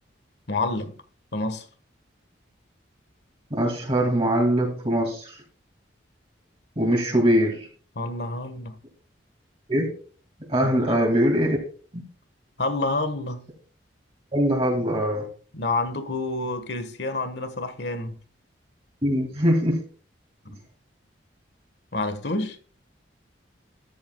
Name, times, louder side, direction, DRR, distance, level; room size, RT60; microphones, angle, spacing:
voice 1, 0.5-0.9 1.3-1.7 7.9-8.8 10.7-11.0 12.6-13.4 15.5-18.2 20.4-20.6 21.9-22.6, left 2 dB, 60° left, 1.5 m, -28 dB
voice 2, 3.5-5.4 6.8-7.7 9.7-9.9 10.5-11.6 11.9-12.0 14.3-15.3 19.0-19.8, equal, 30° right, 2.3 m, -22 dB
13.0 x 11.0 x 2.3 m
head